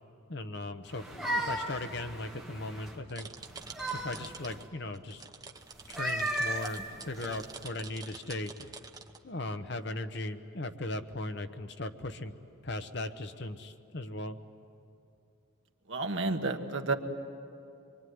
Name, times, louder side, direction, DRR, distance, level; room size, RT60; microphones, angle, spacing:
voice 1, 0.3-3.3 3.9-5.2 5.9-8.7 9.2-12.3 12.6-14.4, left 2 dB, 55° left, 8 dB, 1.0 m, -38 dB
sound 1, 0.9-3.0 3.4-4.6 5.8-7.6, right 1 dB, ahead, 1.8 m, -36 dB
sound 2, 3.1-4.6 4.9-9.2, right 4 dB, 20° right, 0.9 m, -47 dB
voice 2, 15.9-16.9, right 3 dB, 65° right, 5 dB, 1.4 m, -30 dB
25.0 x 23.5 x 9.5 m, 2.6 s
head